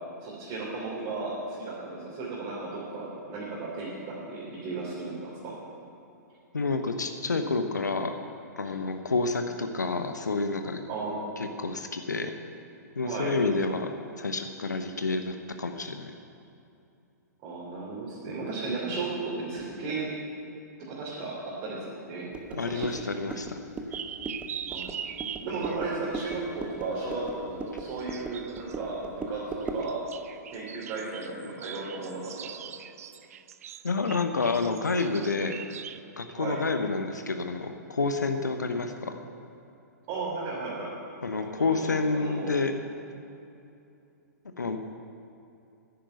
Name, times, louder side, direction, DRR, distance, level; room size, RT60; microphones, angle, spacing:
voice 1, 0.2-5.5 10.9-11.4 13.0-13.3 17.4-20.0 20.9-21.3 21.6-23.0 24.7-24.9 25.4-29.4 29.7-29.9 30.5-32.5 36.3-36.6 40.1-40.9 41.4-42.5, right 3 dB, 35° right, -7 dB, 3.3 m, -35 dB
voice 2, 6.5-8.1 8.6-10.8 11.6-12.3 13.0-13.9 14.2-16.1 22.5-23.6 33.8-35.6 36.2-39.1 41.2-42.7 44.6-44.8, left 3 dB, 75° left, 6 dB, 0.9 m, -29 dB
sound 1, 22.3-29.9, right 3 dB, 10° right, 0.8 m, -38 dB
sound 2, 23.9-25.8 27.7-28.8 29.6-36.0, right 9 dB, 55° right, 0.5 m, -41 dB
10.5 x 10.0 x 7.9 m, 2.7 s
figure-of-eight pair, 110°, 10 cm